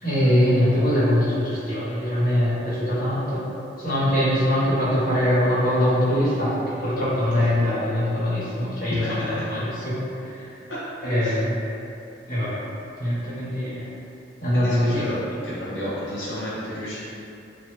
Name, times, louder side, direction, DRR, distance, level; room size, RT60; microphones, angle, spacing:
voice 1, 0.0-3.4 3.8-10.0 10.3-10.4 11.0-11.6 12.3-12.6 13.0-13.8 14.4-15.1, equal, 50° left, -10 dB, 1.1 m, -22 dB
voice 2, 8.9-9.5 11.2-11.4 14.5-15.2 15.4-17.0, equal, 85° left, -10 dB, 0.6 m, -31 dB
3.3 x 2.1 x 3.0 m, 2.7 s
head